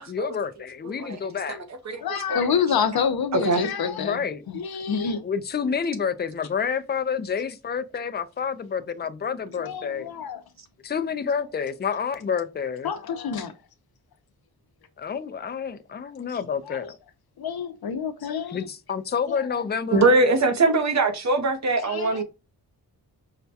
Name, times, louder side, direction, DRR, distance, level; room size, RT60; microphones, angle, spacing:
voice 1, 0.0-1.6 4.0-4.4 5.2-10.1 10.8-12.9 15.0-17.0 18.5-20.3, left 6 dB, 25° left, 0.4 m, -29 dB
voice 2, 2.0-4.2 4.5-5.2 9.6-10.4 12.8-13.5 16.3-16.9 17.4-18.7 19.3-19.6 21.8-22.2, left 6 dB, 75° left, 0.7 m, -28 dB
voice 3, 19.9-22.2, right 3 dB, 45° right, 0.8 m, -21 dB
5.7 x 2.2 x 2.6 m
wide cardioid pair, 85°, 37 cm